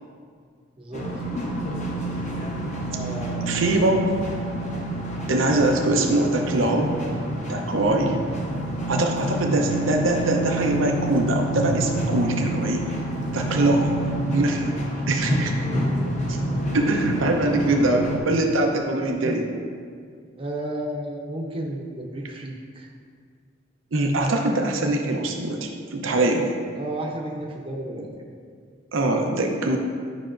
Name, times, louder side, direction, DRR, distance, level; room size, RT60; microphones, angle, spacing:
sound 1, 0.9-18.2, right 1 dB, 35° left, 0.8 m, -28 dB
voice 1, 2.9-3.6 5.3-5.4 13.3-13.8 14.6-15.1 20.4-22.9 26.8-28.1, right 1 dB, 30° right, 0 dB, 0.7 m, -33 dB
voice 2, 3.5-4.3 5.3-6.9 7.5-8.2 8.9-13.0 13.3-13.9 14.3-14.7 15.1-15.5 16.3-16.4 16.7-19.5 23.9-26.5 28.9-29.8, right 2 dB, 90° right, 2 dB, 0.7 m, -22 dB
9.9 x 5.6 x 2.5 m, 2.1 s
head